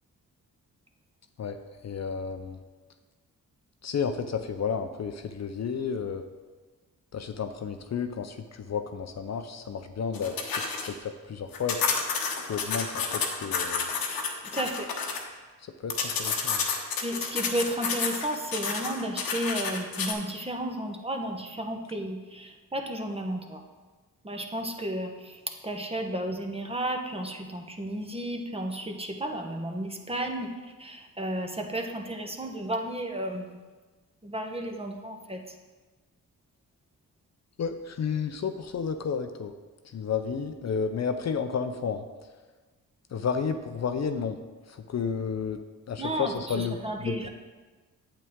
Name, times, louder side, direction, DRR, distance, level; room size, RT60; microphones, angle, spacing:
voice 1, 1.8-2.6 3.8-6.2 7.1-10.6 10.9-11.8 12.4-13.9 15.6-16.7 37.6-39.5 39.8-42.0 43.1-44.4 44.7-45.6 45.9-47.3, left 6 dB, 50° left, 7 dB, 0.6 m, -32 dB
sound 1, 10.1-10.9 11.5-15.2 15.9-20.1, left 5 dB, 90° left, 1.0 m, -30 dB
voice 2, 14.5-14.9 16.2-16.5 17.0-23.6 24.2-30.5 30.8-33.5 34.2-35.4 46.0-47.3, right 1 dB, 15° right, 3 dB, 1.0 m, -33 dB
8.4 x 7.7 x 3.6 m, 1.3 s
cardioid pair, 70°, 35 cm